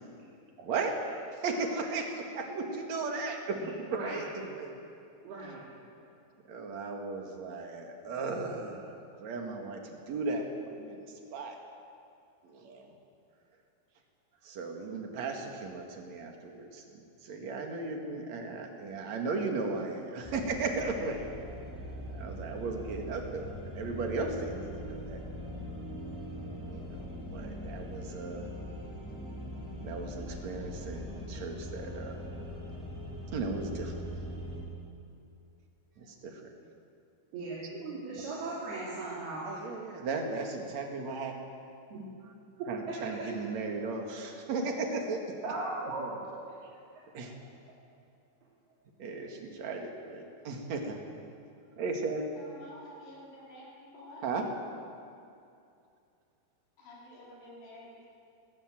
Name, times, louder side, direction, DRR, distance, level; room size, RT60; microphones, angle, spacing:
voice 1, 0.6-0.9 1.3-4.8 6.5-11.6 12.4-12.9 14.4-21.3 22.2-23.5 23.8-25.2 26.7-27.1 27.3-28.5 29.8-32.2 33.3-34.1 36.0-36.5 39.4-41.3 42.7-45.2 46.0-46.1 47.1-47.3 49.0-51.0 51.8-52.3 54.2-54.5, right 3 dB, 50° right, 3 dB, 2.9 m, -36 dB
voice 2, 5.2-5.6 37.3-39.5 41.9-42.1 45.4-46.1 46.5-46.6, right 2 dB, 85° right, -7 dB, 5.2 m, -38 dB
sound 1, 20.2-34.6, equal, 5° right, 5.5 m, -41 dB
voice 3, 52.4-54.3 56.8-58.1, left 1 dB, 65° left, -5 dB, 5.6 m, -50 dB
19.0 x 18.0 x 7.7 m, 2.5 s
omnidirectional pair, 4.4 m